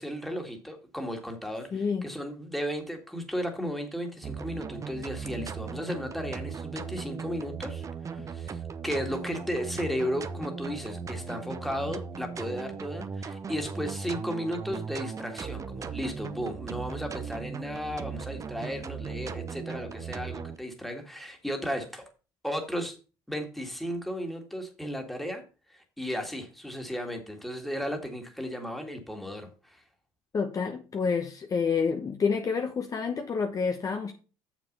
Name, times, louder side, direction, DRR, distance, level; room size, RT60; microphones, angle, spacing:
voice 1, 0.0-22.1 22.4-22.9 23.3-25.4 25.7-29.8, equal, ahead, 2.0 m, -35 dB
voice 2, 1.7-2.1 30.3-34.1, left 5 dB, 35° left, 1.0 m, -28 dB
sound 1, 4.2-20.6, right 6 dB, 30° right, 0.8 m, -38 dB
7.0 x 6.0 x 5.4 m
cardioid pair, 100°, 10 cm